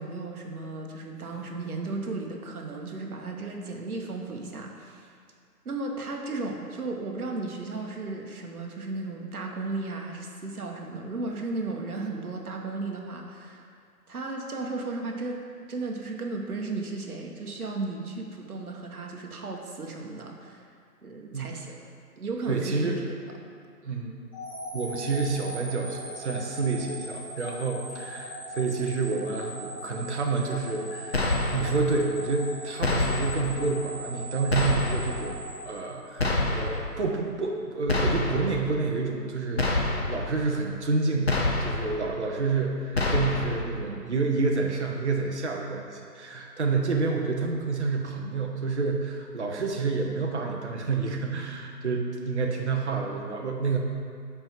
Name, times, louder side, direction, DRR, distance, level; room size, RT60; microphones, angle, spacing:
voice 1, 0.0-5.1 5.6-13.7 14.1-15.4 15.7-20.7 21.0-21.8 22.2-23.1, right 3 dB, 60° right, 1 dB, 1.1 m, -35 dB
voice 2, 22.5-23.0 23.8-24.1 24.7-35.4 35.6-53.8, right 4 dB, 45° right, 0 dB, 0.7 m, -29 dB
sound 1, 24.3-36.5, equal, 5° left, 0.9 m, -40 dB
sound 2, 31.1-31.8 32.8-33.5 34.5-35.2 36.2-36.9 37.9-38.6 39.6-40.3 41.3-42.0 42.9-43.6, left 2 dB, 40° left, 0.6 m, -26 dB
5.3 x 4.5 x 5.7 m, 2.3 s
figure-of-eight pair, 165°, 48 cm